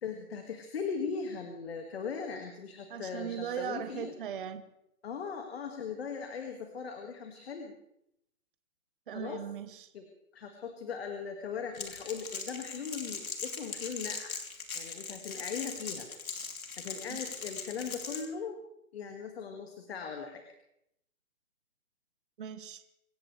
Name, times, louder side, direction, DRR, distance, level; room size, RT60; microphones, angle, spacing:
voice 1, 0.0-4.1 5.0-7.8 9.1-9.4 9.9-10.1 10.3-14.4 14.7-16.1 16.8-18.6 18.9-20.4, left 6 dB, 45° left, 5 dB, 2.0 m, -39 dB
voice 2, 2.9-4.6 9.1-9.9 22.4-22.8, right 8 dB, 35° right, 9 dB, 1.1 m, -38 dB
Crackle, 11.7-18.2, left 5 dB, 70° left, 3.3 m, -40 dB
26.0 x 15.0 x 3.3 m, 0.80 s
hypercardioid pair, 160°, 43 cm